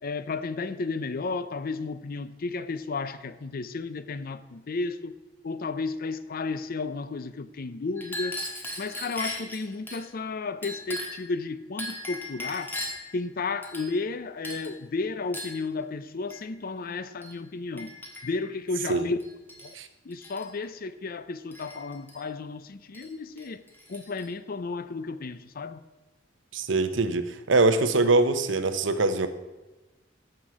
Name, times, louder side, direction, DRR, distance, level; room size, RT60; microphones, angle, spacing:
voice 1, 0.0-5.2 5.4-8.4 8.8-12.8 13.1-18.0 18.2-19.2 19.6-19.8 20.0-23.6 23.9-25.8, left 3 dB, 50° left, 0.5 m, -33 dB
Chink clink, 8.0-10.0 10.6-11.3 11.8-13.1 13.6-14.1 14.4-14.7 15.3-15.6 16.3-16.5 17.2-17.4 17.8-18.5 19.2-19.8 20.1-20.5 21.5-22.2 22.9-23.1 23.4-24.3, left 1 dB, 10° left, 1.6 m, -38 dB
voice 2, 26.5-29.3, right 3 dB, 75° right, 0.8 m, -23 dB
14.0 x 5.9 x 4.8 m
head